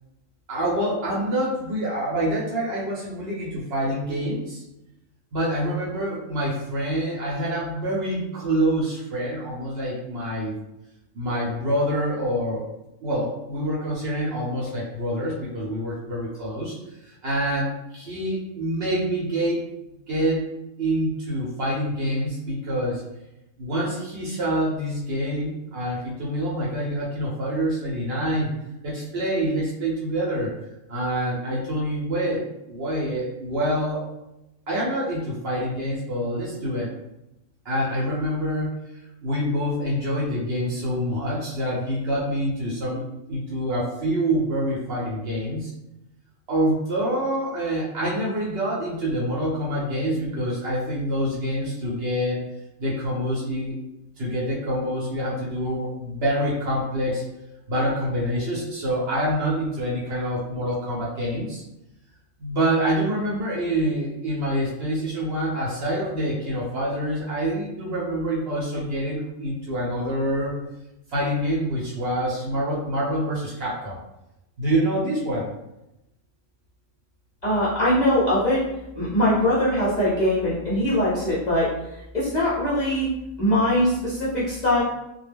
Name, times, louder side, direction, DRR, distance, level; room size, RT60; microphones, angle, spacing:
voice 1, 0.5-4.6 5.3-10.5 11.1-12.7 13.0-16.7 17.0-19.6 20.1-20.4 20.8-23.0 23.6-28.5 28.8-30.5 30.9-32.4 32.7-34.0 34.7-36.9 37.6-38.7 39.2-45.7 46.5-52.4 52.8-53.7 54.2-57.2 57.7-61.6 62.4-70.5 71.1-74.0 74.6-75.5, right 1 dB, 55° right, -5 dB, 0.8 m, -26 dB
voice 2, 77.4-78.6 78.9-81.7 82.1-83.1 83.4-84.8, left 1 dB, 45° left, -9 dB, 0.6 m, -21 dB
2.2 x 2.1 x 3.3 m, 0.91 s
omnidirectional pair, 1.4 m